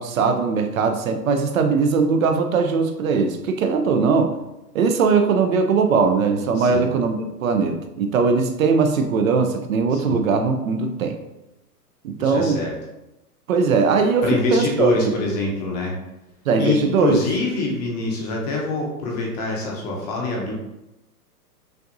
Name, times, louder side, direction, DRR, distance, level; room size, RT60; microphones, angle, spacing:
voice 1, 0.0-4.4 4.7-11.2 12.0-12.6 13.5-15.1 16.5-17.2, right 5 dB, 60° right, 7 dB, 0.6 m, -20 dB
voice 2, 6.6-6.9 9.9-10.2 12.2-12.7 14.2-15.9 16.6-20.5, left 3 dB, 25° left, -1 dB, 0.6 m, -24 dB
5.7 x 2.6 x 2.6 m, 0.96 s
hypercardioid pair, 145°, 48 cm